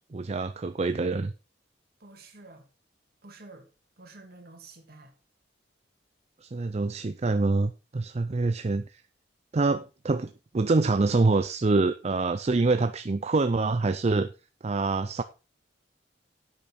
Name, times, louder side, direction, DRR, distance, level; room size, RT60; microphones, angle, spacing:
voice 1, 0.1-1.3 6.4-8.8 9.5-14.3 14.6-15.2, right 3 dB, 35° right, 0.5 m, -25 dB
voice 2, 2.0-2.7 3.2-3.7 4.0-5.1, right 3 dB, 55° right, 2.7 m, -49 dB
10.5 x 8.7 x 4.3 m
head